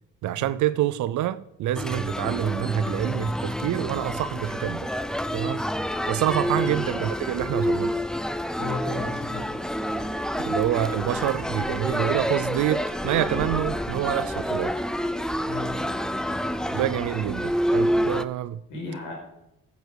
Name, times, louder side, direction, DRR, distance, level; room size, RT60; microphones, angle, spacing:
voice 1, 0.2-4.9 5.3-5.6 6.1-8.0 10.4-14.9 16.7-18.6, right 13 dB, 75° right, 0.5 m, -27 dB
sound 1, 1.8-18.2, equal, ahead, 0.5 m, -28 dB
voice 2, 8.6-9.5 15.4-15.7 18.7-19.1, left 3 dB, 80° left, 5.2 m, -34 dB
15.5 x 8.1 x 4.8 m
cardioid pair, 90°, 30 cm